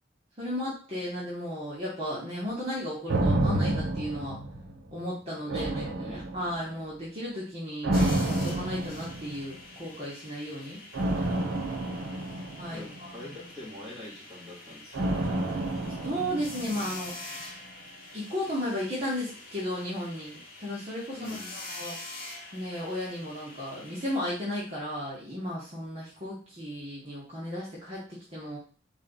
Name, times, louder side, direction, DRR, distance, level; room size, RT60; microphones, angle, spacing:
voice 1, 0.4-4.4 4.9-7.9 8.3-10.8 12.5-13.1 16.0-17.4 18.1-21.9 22.5-28.6, equal, 30° right, -8 dB, 1.4 m, -34 dB
sound 1, 3.1-5.0 5.5-6.8 7.8-9.5 10.9-13.3 14.9-17.1 17.4-17.5, right 1 dB, 90° right, 1.0 m, -29 dB
voice 2, 5.5-6.2 11.8-12.4 12.7-15.4 21.2-21.6, left 1 dB, ahead, -10 dB, 2.4 m, -45 dB
sound 2, 7.9-24.2, left 2 dB, 50° left, 1.0 m, -45 dB
4.1 x 3.2 x 4.0 m, 0.40 s
head